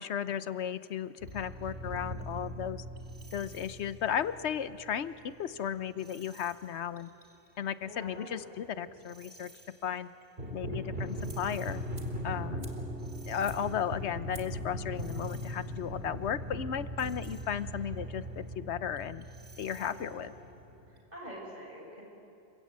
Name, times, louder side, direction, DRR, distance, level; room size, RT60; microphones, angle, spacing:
voice 1, 0.0-2.8 3.3-7.1 7.6-9.5 9.8-10.1 10.5-11.8 12.2-12.7 13.3-19.3 19.6-20.3, left 8 dB, 80° left, 14 dB, 1.1 m, -35 dB
sound 1, 1.2-5.5 6.0-6.5 7.0-7.3 7.8-9.7 10.2-21.0, equal, 55° right, 3.4 m, -40 dB
voice 2, 7.9-8.9 19.9-20.2 20.9-22.0, equal, 40° right, -2 dB, 7.1 m, -46 dB
sound 2, 11.3-11.6 11.9-13.9 14.3-14.7 15.0-15.1, right 1 dB, 85° right, 3.2 m, -49 dB
29.0 x 22.5 x 8.7 m, 2.8 s
omnidirectional pair, 1.1 m